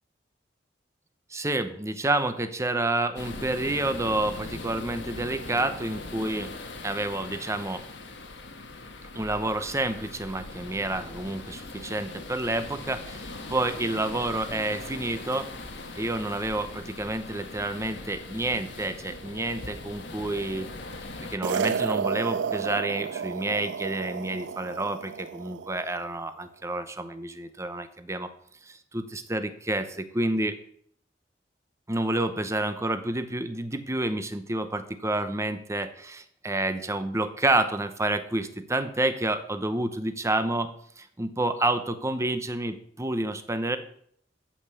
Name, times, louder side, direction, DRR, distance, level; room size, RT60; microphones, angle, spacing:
voice 1, 1.3-6.5 6.8-7.8 9.1-15.5 15.9-20.7 21.3-28.3 28.7-30.5 31.9-40.7 41.0-43.8, right 2 dB, 15° right, 9 dB, 0.9 m, -29 dB
sound 1, 3.2-21.4, left 2 dB, 85° left, 1.6 m, -40 dB
sound 2, 21.4-25.9, right 7 dB, 75° right, 0.3 m, -31 dB
14.0 x 5.5 x 6.9 m, 0.66 s
head